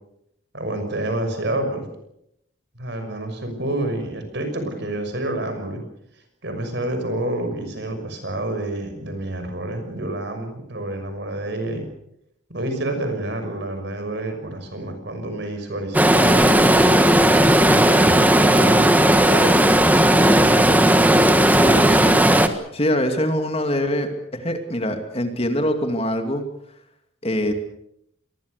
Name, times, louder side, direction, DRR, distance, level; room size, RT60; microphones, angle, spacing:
voice 1, 0.5-1.8 2.7-5.8 6.4-11.9 12.5-17.0 17.8-19.7 20.1-20.8, right 1 dB, 60° right, 7 dB, 6.1 m, -28 dB
Stream, 15.9-22.5, right 1 dB, 10° right, 1.5 m, -15 dB
voice 2, 21.5-22.3 22.7-26.4 27.2-27.5, equal, 30° left, 6 dB, 2.5 m, -24 dB
26.0 x 21.5 x 6.7 m, 0.76 s
head